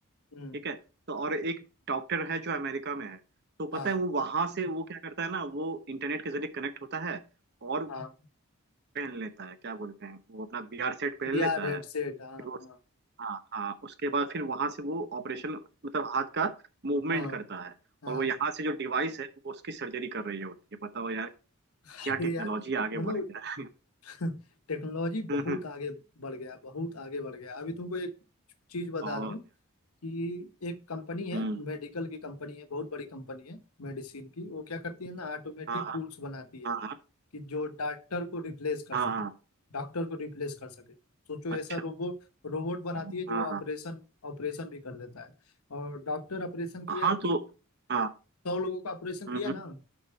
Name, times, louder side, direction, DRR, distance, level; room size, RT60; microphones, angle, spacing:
voice 1, 1.1-1.6 1.9-3.2 3.6-7.2 7.6-7.9 8.9-11.8 12.4-12.6 13.2-15.6 15.9-16.5 16.8-17.7 18.1-20.6 20.8-21.3 22.0-23.7 25.3-25.6 29.0-29.3 31.3-31.6 35.7-36.0 36.6-37.0 38.9-39.3 42.9-43.6 46.9-47.4 47.9-48.1 49.3-49.5, right 3 dB, 50° right, 11 dB, 0.8 m, -32 dB
voice 2, 11.3-12.8 17.1-17.4 18.0-18.3 21.8-22.5 22.9-23.3 24.0-24.3 24.7-28.1 28.7-29.4 30.0-36.7 37.3-39.0 39.7-40.8 41.3-42.1 42.4-45.3 45.7-47.3 48.4-49.8, left 2 dB, 85° left, 8 dB, 1.0 m, -36 dB
7.1 x 5.6 x 4.5 m, 0.33 s
head